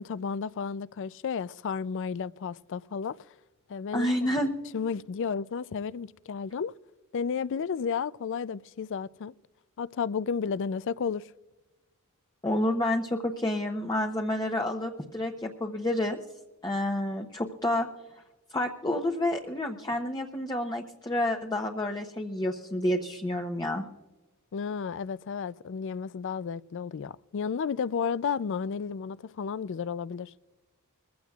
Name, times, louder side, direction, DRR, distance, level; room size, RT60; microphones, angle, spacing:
voice 1, 0.0-3.2 3.7-4.1 4.7-6.7 7.1-9.3 9.8-11.3 24.5-30.3, left 6 dB, 55° left, 0.4 m, -32 dB
voice 2, 3.9-4.5 12.4-16.2 16.6-17.9 18.5-23.8, left 1 dB, 20° left, 0.8 m, -29 dB
22.5 x 15.5 x 2.4 m
head